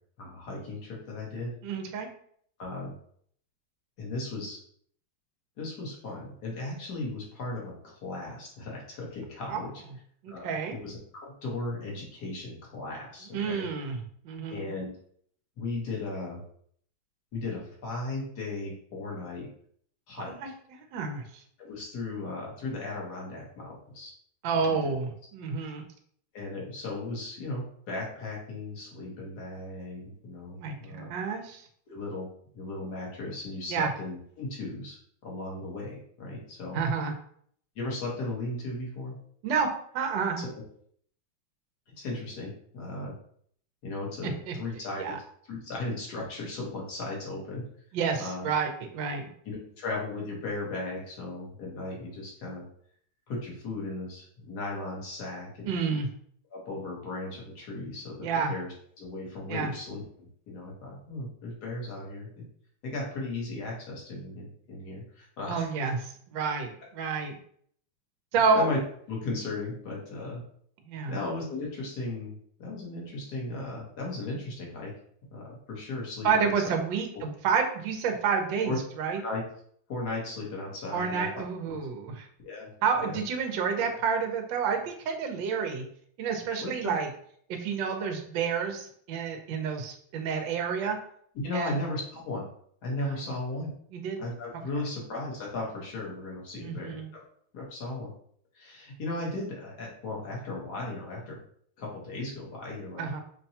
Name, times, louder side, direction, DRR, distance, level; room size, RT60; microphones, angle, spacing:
voice 1, 0.2-1.5 2.6-2.9 4.0-4.6 5.6-9.7 10.3-10.5 10.8-13.7 14.5-14.9 15.6-16.4 17.3-19.5 20.1-20.3 21.6-24.1 24.7-24.9 26.3-31.1 31.9-32.3 32.5-35.0 35.2-36.8 37.7-39.1 40.4-40.5 42.0-43.1 43.8-45.2 45.5-47.7 48.1-48.5 49.4-52.7 53.3-55.7 56.5-58.7 59.0-60.0 60.5-62.4 62.8-65.7 68.5-68.8 69.1-70.4 71.1-74.9 75.3-76.7 78.6-78.8 79.2-79.4 79.9-81.3 81.7-81.8 82.4-82.7 83.0-83.2 86.6-86.9 91.4-92.5 92.8-93.7 94.2-97.0 97.5-98.1 98.5-101.4 101.8-103.1, left 2 dB, 55° left, -3 dB, 1.5 m, -36 dB
voice 2, 1.6-2.1 9.5-9.6 10.2-10.8 13.3-14.7 20.3-21.2 24.4-25.8 30.6-31.6 33.7-33.9 36.7-37.1 39.4-39.7 39.9-40.4 44.2-44.6 45.0-45.2 47.9-49.3 55.6-56.1 58.2-58.5 59.5-59.7 65.5-67.4 68.3-68.7 70.9-71.2 76.2-79.2 80.9-82.3 82.8-85.8 86.2-87.1 87.5-91.0 91.5-91.8 93.0-93.3 93.9-94.2 96.5-97.1 103.0-103.2, right 5 dB, 75° right, 4 dB, 1.3 m, -29 dB
5.7 x 2.2 x 2.7 m, 0.62 s
omnidirectional pair, 2.2 m